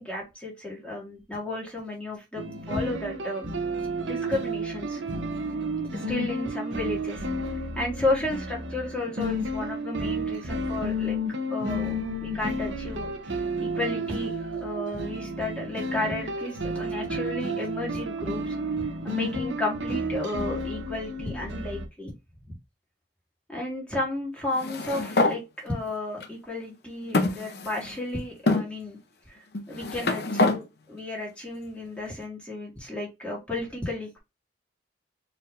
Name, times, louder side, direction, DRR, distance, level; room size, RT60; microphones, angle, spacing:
voice 1, 0.0-3.5 4.0-5.0 5.9-11.2 11.5-22.1 22.5-22.6 23.5-29.0 29.3-34.2, left 2 dB, 5° left, -3 dB, 1.7 m, -33 dB
sound 1, 2.4-21.9, right 1 dB, 85° right, 0.8 m, -31 dB
sound 2, 24.5-25.4 26.2-26.3 27.1-28.0 28.5-28.7 29.5-30.6, left 2 dB, 60° left, 0.7 m, -25 dB
4.5 x 3.3 x 2.5 m, 0.23 s
head